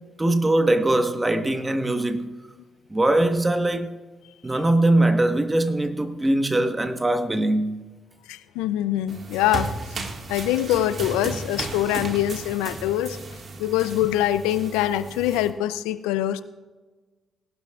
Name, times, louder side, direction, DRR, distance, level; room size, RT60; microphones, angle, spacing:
voice 1, 0.2-2.4 2.9-4.0 4.4-7.9, right 1 dB, 20° right, 1.3 m, -21 dB
voice 2, 8.3-9.7 10.3-13.2 13.6-16.4, left 12 dB, 85° left, 0.5 m, -24 dB
sound 1, 9.1-15.5, right 3 dB, 50° right, 1.8 m, -35 dB
19.5 x 12.0 x 2.4 m
hypercardioid pair, 50°, 0 cm